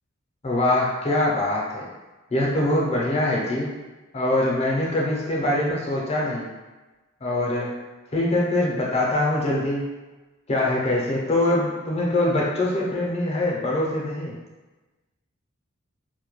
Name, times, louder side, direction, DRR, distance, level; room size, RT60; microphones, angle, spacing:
voice 1, 0.4-1.9 2.3-3.8 4.1-6.5 7.2-7.7 8.1-9.8 10.5-14.3, left 1 dB, 30° left, -3 dB, 0.5 m, -23 dB
2.2 x 2.1 x 3.0 m, 1.2 s
head